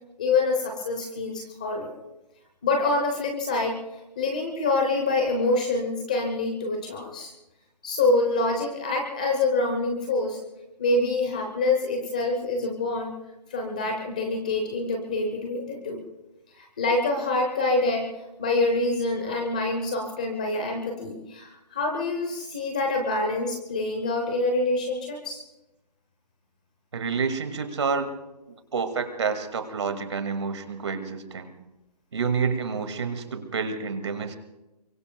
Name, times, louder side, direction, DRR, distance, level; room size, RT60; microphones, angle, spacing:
voice 1, 0.2-1.9 2.6-3.8 4.2-7.3 7.8-10.4 10.8-13.1 13.5-16.0 16.5-18.1 18.4-25.4, left 2 dB, 10° left, 3 dB, 0.7 m, -26 dB
voice 2, 26.9-28.1 28.7-31.5 32.1-34.4, right 5 dB, 45° right, 8 dB, 2.1 m, -28 dB
27.0 x 24.0 x 2.3 m, 0.97 s
hypercardioid pair, 175°, 21 cm